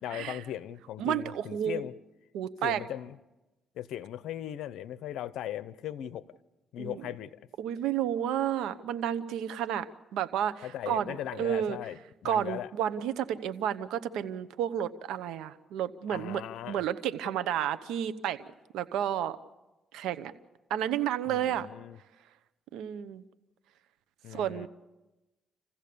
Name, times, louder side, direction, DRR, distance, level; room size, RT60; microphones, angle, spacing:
voice 1, 0.0-1.9 2.6-3.2 3.7-6.3 6.7-7.4 10.6-12.7 16.1-16.8 21.3-22.0 24.2-24.7, left 11 dB, 80° left, 0.8 m, -38 dB
voice 2, 1.0-1.8 2.3-2.8 6.8-7.0 7.6-11.8 12.2-16.4 16.7-18.5 18.7-19.4 19.9-20.3 20.7-21.7 22.7-23.2 24.3-24.7, right 10 dB, 90° right, 0.9 m, -31 dB
28.0 x 15.5 x 6.9 m
cardioid pair, 90°, 0 cm